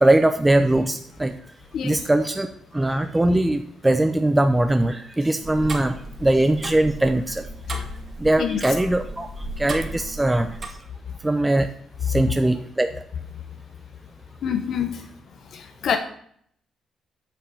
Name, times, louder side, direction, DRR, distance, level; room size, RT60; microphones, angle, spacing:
voice 1, 0.0-1.3 1.8-2.5 2.7-5.9 6.2-7.4 8.2-9.3 9.6-10.6 11.2-11.7 12.1-12.9, right 1 dB, 15° right, 7 dB, 0.7 m, -20 dB
Tick-tock, 5.4-10.7, right 2 dB, 45° right, 2.2 m, -35 dB
voice 2, 14.4-15.1 15.5-16.0, left 8 dB, 65° left, 7 dB, 1.0 m, -26 dB
8.9 x 5.5 x 7.0 m, 0.63 s
cardioid pair, 90°, 0 cm